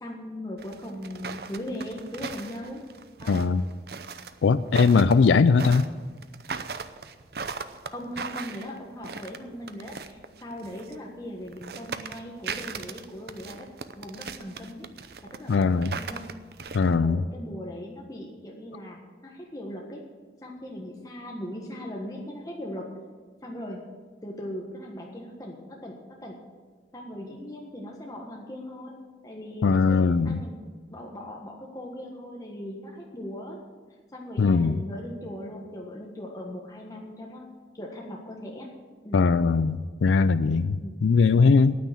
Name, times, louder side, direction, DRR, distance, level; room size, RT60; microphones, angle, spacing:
voice 1, 0.0-2.8 3.2-3.5 7.9-13.7 14.0-14.9 15.3-16.3 16.9-20.0 20.4-22.9 23.4-23.8 24.2-26.4 26.9-28.9 29.2-30.5 30.9-33.6 34.1-37.4 37.7-38.7 39.0-39.3 40.7-41.0, left 1 dB, 20° left, -1 dB, 1.4 m, -39 dB
sound 1, 0.6-11.0 11.4-17.0, right 5 dB, 60° right, 0.7 m, -38 dB
voice 2, 3.3-3.6 4.4-5.8 15.5-16.0 16.7-17.2 29.6-30.4 34.4-34.8 39.1-41.8, left 4 dB, 90° left, 12 dB, 0.4 m, -20 dB
9.5 x 9.3 x 9.1 m, 1.5 s
head